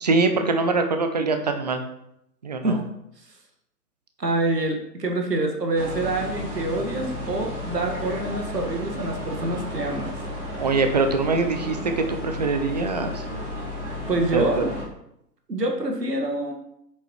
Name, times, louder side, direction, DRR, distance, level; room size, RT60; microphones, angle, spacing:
voice 1, 0.0-1.8 2.4-2.8 10.6-13.2 14.3-14.7, right 3 dB, 25° right, 6 dB, 0.6 m, -23 dB
voice 2, 4.2-10.1 14.1-14.7 15.5-16.5, right 2 dB, 75° right, 3 dB, 1.9 m, -26 dB
sound 1, 5.7-14.8, left 1 dB, 45° right, 2.8 m, -33 dB
8.6 x 7.3 x 3.1 m, 0.79 s
figure-of-eight pair, 130°, 49 cm